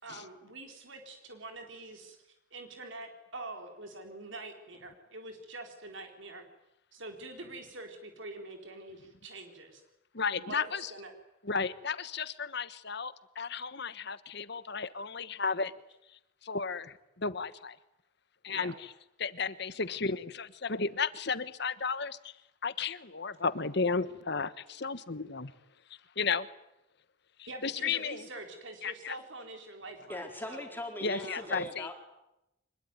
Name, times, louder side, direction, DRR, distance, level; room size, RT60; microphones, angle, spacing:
voice 1, 0.0-2.2 2.5-6.4 6.9-9.8 10.4-11.1 18.5-18.7 27.5-30.7 31.2-31.5, right 2 dB, 65° right, 4 dB, 4.1 m, -45 dB
voice 2, 10.1-10.9 11.4-15.7 16.4-17.8 18.4-18.7 19.2-22.3 22.6-25.5 26.2-26.5 27.6-28.2 28.8-29.2 31.0-31.9, left 5 dB, 55° left, 15 dB, 1.3 m, -33 dB
voice 3, 30.1-32.0, left 1 dB, 10° left, 3 dB, 4.3 m, -40 dB
25.5 x 22.0 x 9.6 m, 0.87 s
head